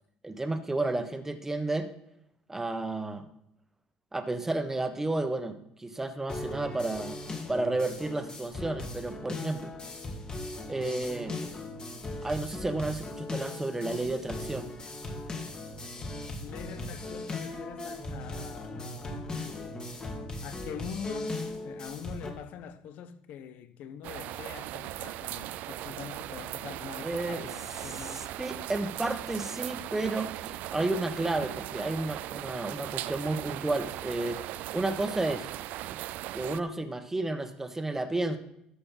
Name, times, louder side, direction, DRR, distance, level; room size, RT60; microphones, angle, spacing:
voice 1, 0.2-1.9 2.5-3.2 4.1-7.2 7.5-9.7 10.7-11.3 12.2-14.7 27.0-27.5 27.8-34.4 34.7-35.5 36.3-38.4, right 2 dB, 15° right, 1.4 m, -32 dB
sound 1, 6.3-22.3, left 2 dB, 30° left, 2.7 m, -38 dB
voice 2, 16.4-19.3 20.4-28.3, left 8 dB, 65° left, 1.0 m, -43 dB
sound 2, 24.0-36.6, right 15 dB, 70° right, 0.4 m, -38 dB
13.5 x 5.6 x 5.8 m
supercardioid pair, 80°, 3 cm